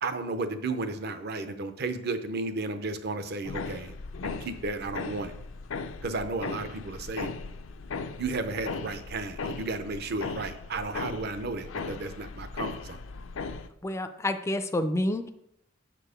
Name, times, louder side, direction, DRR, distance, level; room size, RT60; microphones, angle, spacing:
voice 1, 0.0-4.0 4.2-5.3 6.0-7.3 8.2-13.0, right 3 dB, 55° right, 10 dB, 0.7 m, -33 dB
sound 1, 3.4-13.7, left 4 dB, 75° left, 0.5 m, -38 dB
voice 2, 13.8-15.3, left 1 dB, 15° left, 8 dB, 0.3 m, -28 dB
6.9 x 4.6 x 5.0 m, 0.75 s
head